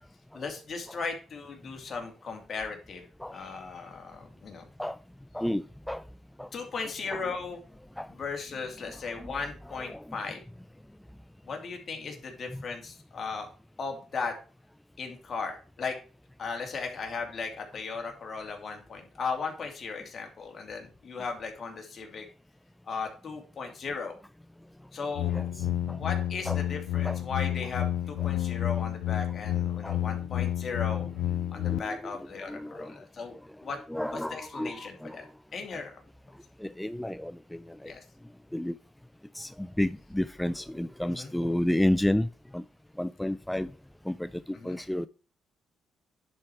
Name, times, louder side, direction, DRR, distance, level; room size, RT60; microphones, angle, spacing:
voice 1, 0.3-3.0 3.3-4.7 6.5-7.6 8.1-10.4 11.4-13.5 13.8-14.3 15.0-16.0 16.4-22.2 22.9-24.2 24.9-25.4 26.0-31.1 31.5-33.4 33.6-33.8 34.1-35.3 35.5-35.9 37.8-38.0 41.0-41.3 44.5-44.8, left 4 dB, 45° left, 2.4 m, -37 dB
voice 2, 5.3-6.0 6.4-6.5 7.1-7.2 8.0-8.1 9.2-9.4 9.7-10.1 12.5-12.6 25.3-26.0 26.5-26.6 27.0-27.2 29.8-30.0 31.7-32.9 33.9-35.2 35.7-35.8 36.6-37.9 38.5-38.8 39.3-42.3 42.5-42.6 43.0-43.7 44.1-45.1, left 1 dB, 5° left, 0.3 m, -31 dB
sound 1, 25.2-31.8, left 13 dB, 85° left, 0.4 m, -30 dB
10.5 x 4.4 x 4.7 m
cardioid pair, 90°, 0 cm